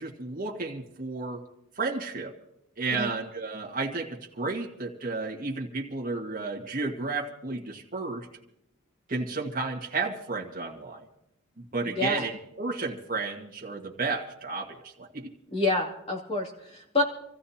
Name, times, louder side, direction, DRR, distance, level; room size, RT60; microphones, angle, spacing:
voice 1, 0.0-1.4 1.8-2.3 2.8-8.3 9.1-11.0 11.7-15.3, right 3 dB, 40° right, -2 dB, 1.7 m, -32 dB
voice 2, 15.5-17.0, left 2 dB, 25° left, 0 dB, 2.6 m, -27 dB
27.0 x 15.0 x 2.9 m, 0.80 s
head